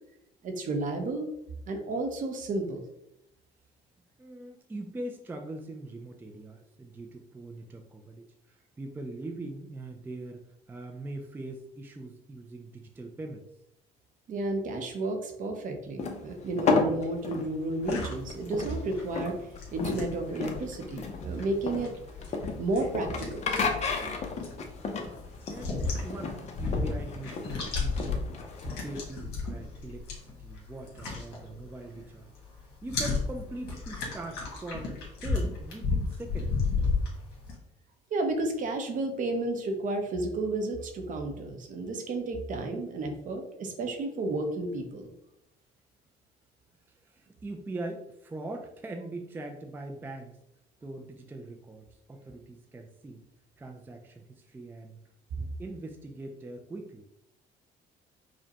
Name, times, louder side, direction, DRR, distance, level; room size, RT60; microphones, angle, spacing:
voice 1, 0.4-1.3 1.7-2.8 14.3-19.4 19.7-21.9 22.6-23.4 38.1-45.1, right 2 dB, 50° right, 5 dB, 0.7 m, -32 dB
voice 2, 4.2-13.4 25.5-32.3 32.8-36.6 46.9-50.4 50.8-53.2 53.6-55.0 55.4-57.1, right 2 dB, 10° right, 3 dB, 0.4 m, -42 dB
sound 1, 16.0-29.0, left 4 dB, 40° left, 0.6 m, -33 dB
sound 2, 17.8-32.1 32.3-37.5, left 4 dB, 75° left, 1.4 m, -34 dB
4.9 x 2.1 x 2.8 m, 0.82 s
cardioid pair, 110°, 17 cm